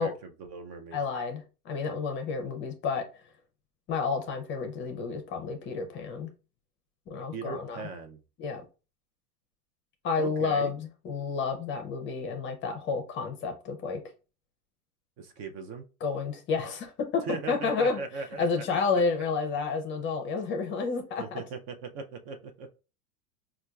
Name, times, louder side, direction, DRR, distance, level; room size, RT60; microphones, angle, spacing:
voice 1, 0.0-1.0 7.3-8.2 10.2-10.7 15.2-15.8 17.2-18.8 21.2-22.7, right 5 dB, 45° right, 0.5 m, -39 dB
voice 2, 0.9-3.0 3.9-6.3 7.1-7.8 8.4-8.6 10.0-14.0 16.0-18.0 18.4-21.4, left 4 dB, 25° left, 0.5 m, -30 dB
4.3 x 2.3 x 2.3 m
hypercardioid pair, 120°, 45 cm